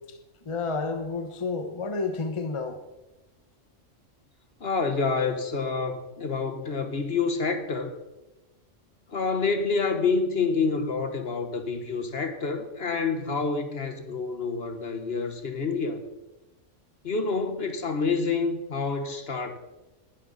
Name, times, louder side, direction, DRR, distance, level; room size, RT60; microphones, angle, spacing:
voice 1, 0.4-2.8, left 4 dB, 25° left, 1.1 m, -30 dB
voice 2, 4.6-7.9 9.1-16.0 17.0-19.6, left 4 dB, 50° left, 1.4 m, -28 dB
20.5 x 11.5 x 4.1 m
omnidirectional pair, 1.3 m